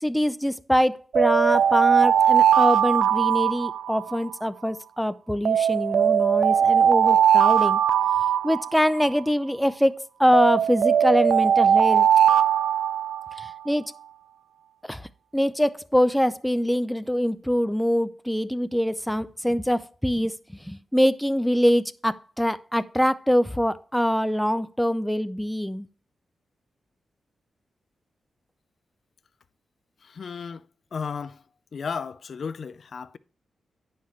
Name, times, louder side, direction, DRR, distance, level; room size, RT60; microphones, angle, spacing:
voice 1, 0.0-7.8 8.4-12.1 13.4-13.9 14.9-25.9, equal, ahead, 0.5 m, -24 dB
sound 1, 1.1-4.3 5.4-9.2 10.3-13.5, right 9 dB, 75° right, 0.4 m, -20 dB
voice 2, 30.0-30.7 30.9-31.4 31.7-33.2, left 6 dB, 60° left, 0.5 m, -34 dB
9.5 x 5.7 x 3.1 m
cardioid pair, 80°, 0 cm